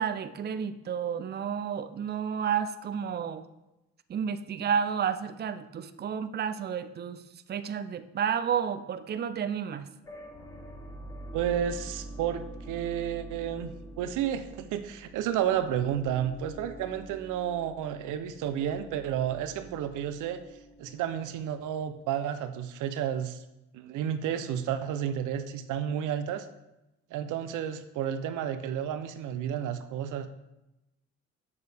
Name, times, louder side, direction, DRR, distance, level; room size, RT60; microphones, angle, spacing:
voice 1, 0.0-3.4 4.1-7.2 7.5-9.9, right 7 dB, 35° right, 11 dB, 0.5 m, -31 dB
sound 1, 10.0-22.0, right 1 dB, 10° left, 3.1 m, -46 dB
voice 2, 11.3-20.4 20.8-23.4 23.7-26.5 27.1-30.3, right 9 dB, 90° right, 10 dB, 0.6 m, -31 dB
8.3 x 6.6 x 3.4 m, 0.95 s
cardioid pair, 90°, 30 cm